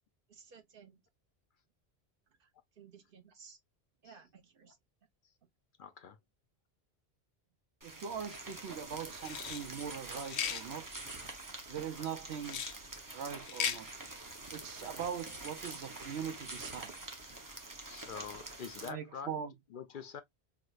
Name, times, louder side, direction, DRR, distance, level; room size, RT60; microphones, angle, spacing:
voice 1, 0.3-1.0 2.8-3.6 4.0-4.8, right 6 dB, 60° right, 1.0 m, -56 dB
voice 2, 5.8-6.2 11.2-11.3 17.9-19.4 19.7-20.2, left 7 dB, 60° left, 0.6 m, -45 dB
sound 1, 7.8-18.9, right 2 dB, 20° right, 0.7 m, -46 dB
voice 3, 7.8-10.9 11.7-12.6 13.1-13.9 14.5-17.0 18.9-19.5, right 8 dB, 80° right, 0.9 m, -41 dB
sound 2, 9.2-9.6 10.2-10.6 12.4-12.7 13.4-13.8, left 8 dB, 85° left, 0.9 m, -36 dB
4.7 x 2.1 x 2.3 m
omnidirectional pair, 1.1 m